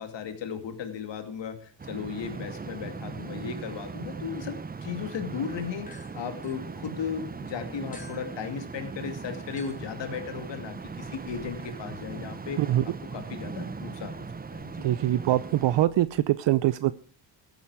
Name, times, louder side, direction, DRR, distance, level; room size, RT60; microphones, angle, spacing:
voice 1, 0.0-12.6 13.1-14.3 14.5-14.8, left 7 dB, 70° left, 7 dB, 2.5 m, -36 dB
sound 1, 1.8-15.9, right 4 dB, 20° right, 0.7 m, -39 dB
sound 2, 5.9-7.3 7.9-16.2, left 3 dB, 15° left, 4.0 m, -56 dB
voice 2, 14.8-16.9, right 14 dB, 65° right, 15 dB, 0.6 m, -23 dB
14.5 x 10.5 x 4.9 m, 0.41 s
cardioid pair, 110°, 46 cm